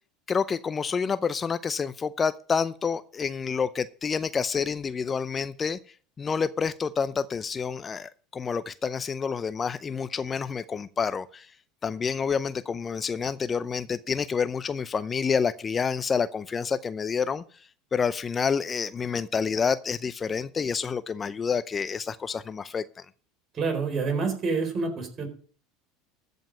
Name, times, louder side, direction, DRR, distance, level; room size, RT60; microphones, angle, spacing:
voice 1, 0.3-5.8 6.2-11.5 11.8-23.1, left 6 dB, 25° left, 14 dB, 0.6 m, -28 dB
voice 2, 23.5-25.3, right 4 dB, 40° right, 4 dB, 4.3 m, -27 dB
14.5 x 5.3 x 7.4 m, 0.43 s
hypercardioid pair, 75°, 0 cm